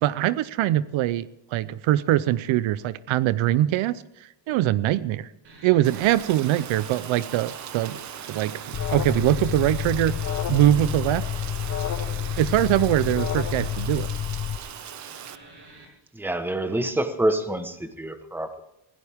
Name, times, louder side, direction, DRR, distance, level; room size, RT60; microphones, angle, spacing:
voice 1, 0.0-4.0 4.5-5.3 5.6-8.0 8.3-8.5 8.9-10.1 10.5-11.3 12.4-14.1, right 13 dB, 80° right, 17 dB, 0.8 m, -22 dB
sound 1, 5.4-15.9, right 3 dB, 60° right, 6.5 m, -47 dB
Rain, 5.8-15.4, right 10 dB, 40° right, 0.6 m, -39 dB
Alarm, 8.7-14.6, left 9 dB, 35° left, 0.7 m, -29 dB
voice 2, 16.1-18.6, right 1 dB, 5° right, 8 dB, 1.0 m, -27 dB
20.5 x 17.0 x 3.6 m, 0.88 s
cardioid pair, 170°, 47 cm